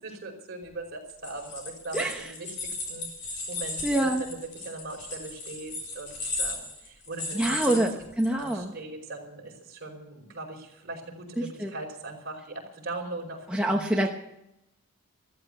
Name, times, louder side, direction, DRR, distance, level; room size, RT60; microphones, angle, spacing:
voice 1, 0.0-7.8 8.3-14.0, right 2 dB, 45° right, 0 dB, 5.1 m, -40 dB
sound 1, 1.1-8.5, left 3 dB, 55° left, 4.0 m, -36 dB
voice 2, 3.8-4.2 7.3-7.9 8.2-8.7 11.6-11.7 13.5-14.1, right 1 dB, 5° right, 0 dB, 1.0 m, -25 dB
14.5 x 14.0 x 6.7 m, 0.85 s
head